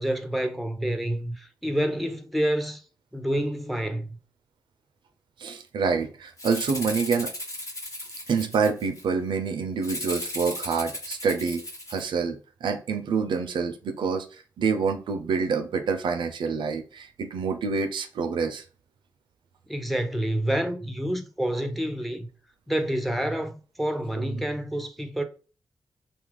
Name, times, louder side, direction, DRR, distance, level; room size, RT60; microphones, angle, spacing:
voice 1, 0.0-2.8 3.1-4.2 19.7-22.3 22.7-25.2, right 1 dB, ahead, 0.6 m, -28 dB
voice 2, 5.4-7.3 8.3-11.6 11.9-14.3 14.6-18.6 24.2-24.3, right 5 dB, 80° right, 0.4 m, -27 dB
Rattle (instrument), 6.4-9.0 9.8-12.0, left 1 dB, 45° left, 1.2 m, -36 dB
2.8 x 2.3 x 3.3 m
cardioid pair, 45°, 8 cm